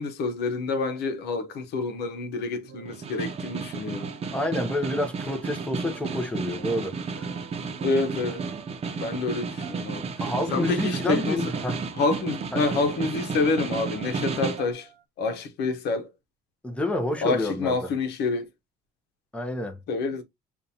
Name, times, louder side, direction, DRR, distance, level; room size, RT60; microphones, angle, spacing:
voice 1, 0.0-4.1 7.8-8.4 9.0-10.0 10.5-11.4 12.0-14.9 15.2-16.1 17.2-18.5 19.9-20.2, left 3 dB, 75° left, 1.0 m, -27 dB
sound 1, 2.6-4.9 5.3-15.0, right 7 dB, 80° right, 0.9 m, -46 dB
Snare drum, 2.9-14.7, right 5 dB, 35° right, 0.8 m, -32 dB
voice 2, 4.3-7.3 8.9-9.0 10.2-11.8 12.5-12.6 16.6-17.8 19.3-19.8, left 1 dB, 5° left, 0.9 m, -29 dB
6.8 x 2.6 x 2.7 m
cardioid pair, 110°, 17 cm